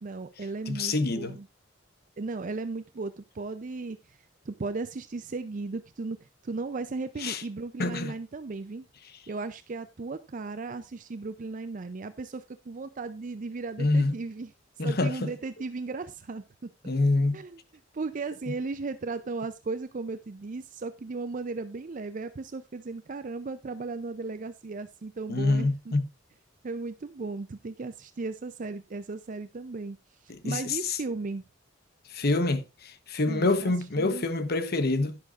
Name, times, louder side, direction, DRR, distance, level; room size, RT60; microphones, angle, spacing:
voice 1, 0.0-1.5 2.2-4.2 4.4-8.9 9.3-14.5 14.8-16.7 17.3-17.6 17.9-25.9 26.6-31.4 33.3-34.2, right 3 dB, 40° right, 0.5 m, -36 dB
voice 2, 0.7-1.4 7.2-7.4 7.8-8.1 13.8-14.1 14.8-15.3 16.8-17.4 25.3-26.0 30.3-31.0 32.1-35.2, left 2 dB, 55° left, 1.0 m, -26 dB
11.5 x 10.5 x 2.5 m
head